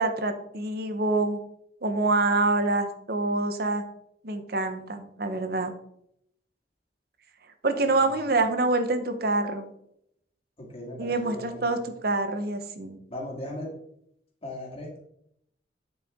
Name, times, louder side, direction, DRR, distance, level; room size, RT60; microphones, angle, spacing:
voice 1, 0.0-1.4 1.8-3.8 4.2-5.7 7.6-9.7 11.0-13.0, right 2 dB, 55° right, 8 dB, 1.0 m, -26 dB
voice 2, 10.6-11.8 13.1-13.7 14.4-15.0, left 1 dB, 35° left, -1 dB, 2.3 m, -38 dB
8.9 x 6.7 x 3.7 m, 0.74 s
head